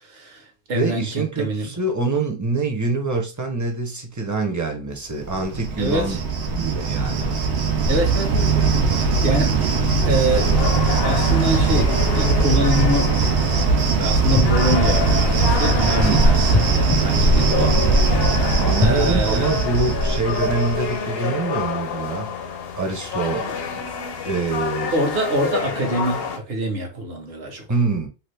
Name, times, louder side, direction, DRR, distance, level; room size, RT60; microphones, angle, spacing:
voice 1, 0.1-1.7 5.8-6.2 7.9-9.6 10.0-10.5 11.0-13.2 14.0-16.5 17.0-17.8 18.8-19.5 24.9-27.6, right 1 dB, 65° right, 1.1 m, -25 dB
voice 2, 0.7-6.2 6.5-7.4 16.0-16.3 18.6-22.3 22.8-23.6 24.2-24.9 27.7-28.1, right 3 dB, 20° right, 0.5 m, -25 dB
Cricket, 5.2-20.9, right 4 dB, 90° right, 0.9 m, -20 dB
sound 1, 10.3-26.4, left 6 dB, 70° left, 0.8 m, -28 dB
sound 2, 14.3-16.0 16.5-18.1 18.7-20.4 21.0-21.1, left 4 dB, 40° left, 0.4 m, -27 dB
2.8 x 2.4 x 3.2 m
omnidirectional pair, 1.1 m